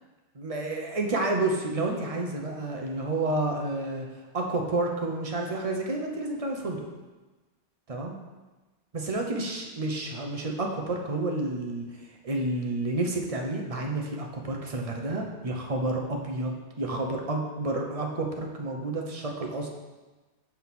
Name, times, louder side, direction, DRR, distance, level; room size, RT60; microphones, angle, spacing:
voice 1, 0.3-4.1 4.3-6.9 7.9-8.1 8.9-19.7, right 2 dB, 35° right, 1 dB, 0.8 m, -30 dB
5.5 x 4.5 x 5.9 m, 1.2 s
omnidirectional pair, 1.2 m